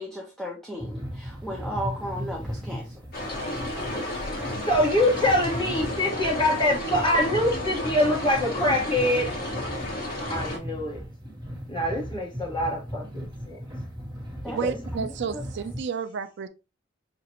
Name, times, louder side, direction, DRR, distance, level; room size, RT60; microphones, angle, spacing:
voice 1, 0.0-3.0 14.4-14.6 15.3-15.4, equal, ahead, 0.5 m, -35 dB
sound 1, 0.8-15.8, equal, 25° right, 1.1 m, -37 dB
sound 2, 3.1-10.6, left 1 dB, 50° left, 1.9 m, -32 dB
voice 2, 4.6-9.3 10.3-11.0 11.7-13.6 14.4-14.8, left 1 dB, 25° left, 1.3 m, -24 dB
voice 3, 14.5-16.5, right 6 dB, 55° right, 0.4 m, -31 dB
5.9 x 2.4 x 2.9 m
head